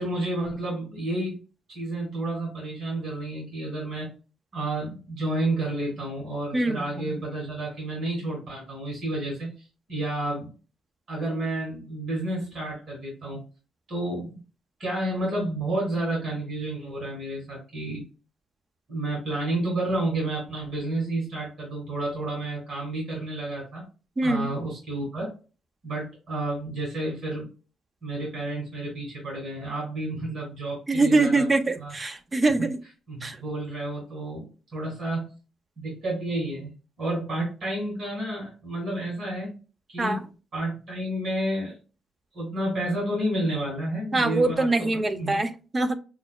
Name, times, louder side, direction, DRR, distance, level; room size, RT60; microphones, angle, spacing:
voice 1, 0.0-1.4 1.7-4.1 4.5-10.5 11.1-13.4 13.9-14.4 14.8-18.0 18.9-23.9 24.2-25.3 25.8-27.5 28.0-31.5 31.8-31.9 32.6-32.7 33.1-34.4 34.7-35.3 35.8-36.7 37.0-39.6 39.9-40.2 40.5-41.8 42.3-45.5, right 1 dB, 55° right, -2 dB, 1.9 m, -30 dB
voice 2, 6.5-7.1 24.2-24.5 30.9-32.8 33.2-33.4 40.0-40.2 44.1-46.0, right 2 dB, 25° right, 9 dB, 0.4 m, -24 dB
5.9 x 2.0 x 2.3 m, 0.34 s
cardioid pair, 90°, 0 cm